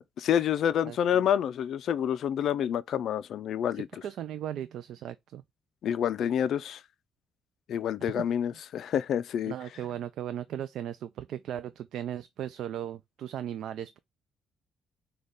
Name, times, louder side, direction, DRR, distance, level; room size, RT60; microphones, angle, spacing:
voice 1, 0.2-3.9 5.8-6.8 7.7-9.5, left 9 dB, 60° left, 0.3 m, -28 dB
voice 2, 0.8-1.3 3.7-5.4 8.0-8.3 9.5-14.0, right 10 dB, 70° right, 0.3 m, -37 dB
6.3 x 2.3 x 3.5 m
cardioid pair, 130°, 0 cm